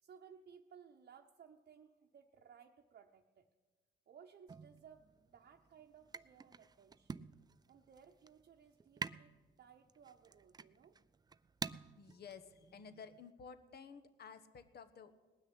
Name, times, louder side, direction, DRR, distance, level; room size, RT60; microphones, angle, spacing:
voice 1, 0.0-3.5 4.1-7.3 7.7-11.0, right 7 dB, 50° right, 1 dB, 0.9 m, -61 dB
sound 1, 4.5-13.3, right 5 dB, 20° right, 0.4 m, -50 dB
voice 2, 12.0-15.1, left 6 dB, 55° left, 11 dB, 1.1 m, -54 dB
19.0 x 6.4 x 9.8 m, 1.3 s
cardioid pair, 90°, 20 cm